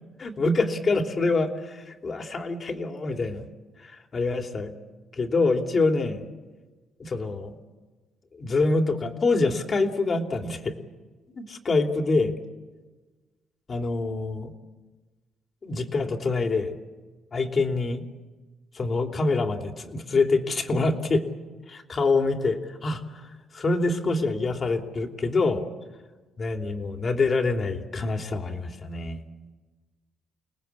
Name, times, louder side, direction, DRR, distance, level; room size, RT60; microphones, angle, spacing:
voice 1, 0.2-3.5 3.8-4.7 5.1-6.2 7.0-7.5 8.4-10.7 11.4-12.3 13.7-14.5 15.6-16.7 17.3-18.0 18.7-21.2 21.7-23.2 23.5-25.6 26.4-29.2, left 3 dB, 40° left, 4 dB, 3.1 m, -25 dB
30.0 x 19.5 x 8.4 m, 1.3 s
cardioid pair, 100°, 0 cm